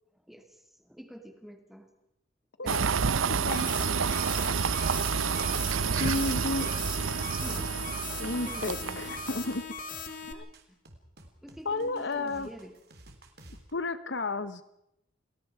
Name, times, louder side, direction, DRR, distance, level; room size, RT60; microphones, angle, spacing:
voice 1, 0.1-1.9 7.4-7.7 8.4-9.2 10.7-10.8 11.4-12.8, equal, ahead, 5 dB, 2.5 m, -48 dB
voice 2, 2.6-2.9 3.3-3.7 6.0-6.7 8.2-9.6 10.3-10.5 11.6-12.5 13.7-14.6, left 2 dB, 60° left, 13 dB, 1.0 m, -32 dB
sound 1, 2.7-9.6, right 6 dB, 85° right, 0.7 m, -29 dB
sound 2, 3.5-10.3, left 5 dB, 40° left, 2.6 m, -40 dB
sound 3, 8.8-13.7, right 1 dB, 50° right, 3.3 m, -55 dB
29.5 x 20.5 x 4.8 m, 0.81 s
head